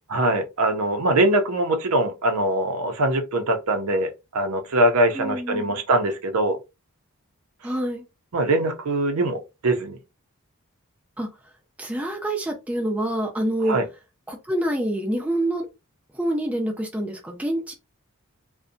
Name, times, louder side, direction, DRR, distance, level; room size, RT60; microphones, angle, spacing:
voice 1, 0.1-6.6 8.3-10.0 13.6-13.8, right 1 dB, 85° right, 0.5 m, -22 dB
voice 2, 5.1-5.8 7.6-8.0 11.2-11.3 11.8-13.8 14.3-15.7 16.1-17.7, right 1 dB, 5° right, 0.4 m, -26 dB
2.6 x 2.1 x 2.5 m
head